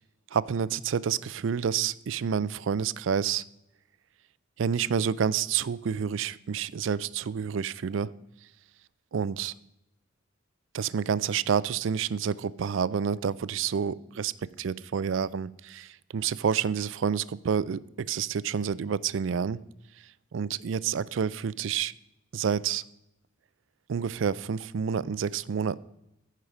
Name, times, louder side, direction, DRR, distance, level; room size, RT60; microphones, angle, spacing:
voice 1, 0.3-3.4 4.6-8.1 9.1-9.5 10.7-14.3 14.6-19.6 20.3-21.9 22.3-22.8 23.9-25.8, right 7 dB, 75° right, 19 dB, 0.4 m, -29 dB
14.5 x 5.7 x 5.0 m, 0.86 s
head